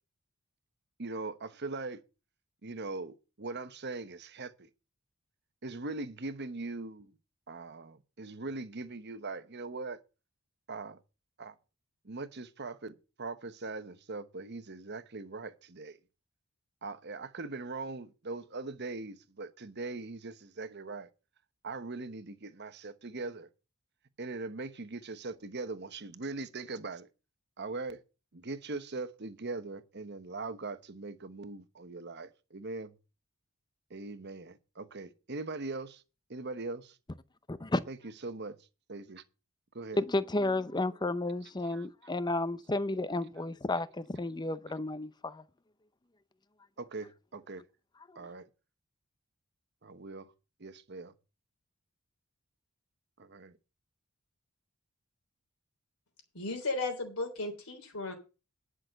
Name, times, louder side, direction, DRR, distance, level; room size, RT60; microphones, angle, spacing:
voice 1, 1.0-2.0 2.6-4.7 5.6-7.1 7.5-10.0 10.7-11.0 11.4-11.6 12.0-16.0 16.8-21.1 21.6-23.5 24.2-27.1 27.6-28.0 28.3-32.9 33.9-36.0 36.3-37.0 37.9-38.6 38.9-39.2 39.7-40.0 41.4-41.9 42.2-42.3 46.8-47.6 48.1-48.5 49.8-50.3 50.6-51.1 53.2-53.6, right 3 dB, 50° right, 1.0 m, -41 dB
voice 2, 37.5-37.8 39.9-45.4, left 2 dB, 20° left, 0.6 m, -32 dB
voice 3, 56.3-58.1, left 3 dB, 80° left, 3.5 m, -35 dB
10.5 x 6.3 x 7.6 m
head